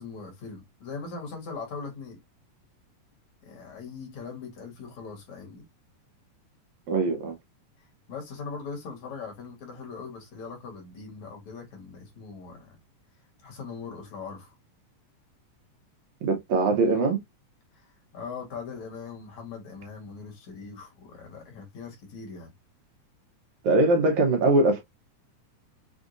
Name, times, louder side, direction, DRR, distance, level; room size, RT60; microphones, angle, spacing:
voice 1, 0.0-2.2 3.4-5.7 7.8-12.8 13.4-14.5 17.7-22.5, left 5 dB, 60° left, 2.7 m, -40 dB
voice 2, 6.9-7.3 16.2-17.2 23.6-24.8, right 2 dB, 70° right, 2.0 m, -22 dB
6.1 x 2.5 x 2.6 m
omnidirectional pair, 3.7 m